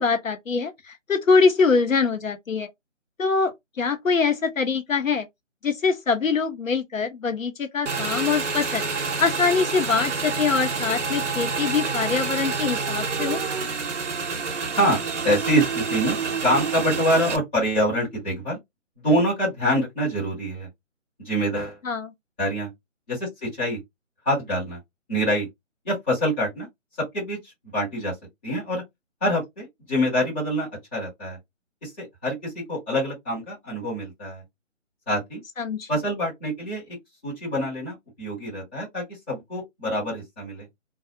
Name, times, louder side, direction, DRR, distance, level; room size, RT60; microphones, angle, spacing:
voice 1, 0.0-2.7 3.2-5.3 5.6-13.4 21.8-22.1 35.6-35.9, left 5 dB, 80° left, 0.9 m, -23 dB
Motorcycle / Engine, 7.9-17.4, right 5 dB, 65° right, 0.7 m, -28 dB
voice 2, 15.2-16.2 16.4-18.6 19.0-20.7 21.2-21.8 22.4-22.7 23.1-23.8 24.2-24.8 25.1-25.5 25.8-26.7 27.1-28.1 28.4-28.8 29.2-31.4 31.8-34.4 35.1-35.4 35.9-37.0 37.2-40.7, equal, 10° left, 1.0 m, -25 dB
2.3 x 2.3 x 2.7 m
figure-of-eight pair, 160°, 39 cm